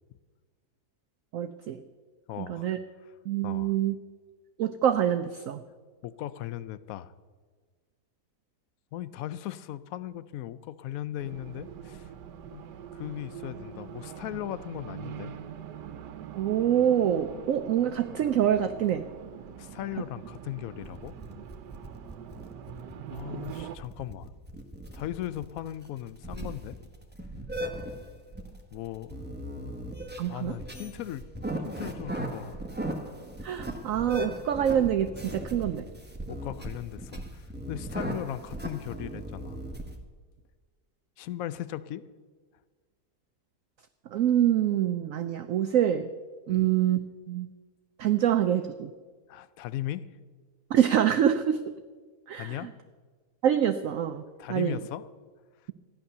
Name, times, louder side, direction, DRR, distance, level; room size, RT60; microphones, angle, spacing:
voice 1, 1.3-1.8 2.4-2.8 3.3-3.9 4.6-5.6 16.3-19.0 30.2-30.6 33.4-35.8 44.1-46.1 46.5-47.0 47.3-47.5 48.0-48.9 50.7-51.6 52.3-52.7 53.4-54.2 54.5-54.8, right 10 dB, 65° right, 9 dB, 0.9 m, -25 dB
voice 2, 2.3-2.7 3.4-3.7 6.0-7.1 8.9-12.1 12.5-12.7 12.9-15.3 19.6-21.1 23.1-24.3 24.9-26.8 28.7-29.2 30.3-31.2 31.6-32.6 36.3-39.6 41.2-42.1 46.5-46.7 49.3-50.1 52.3-52.7 54.4-55.1, left 12 dB, 65° left, 15 dB, 0.9 m, -37 dB
Race car auto racing, 11.2-23.8, right 9 dB, 90° right, 1.4 m, -43 dB
sound 1, 20.8-40.0, right 1 dB, 5° right, 1.0 m, -37 dB
14.0 x 10.5 x 6.7 m, 1.5 s
omnidirectional pair, 1.8 m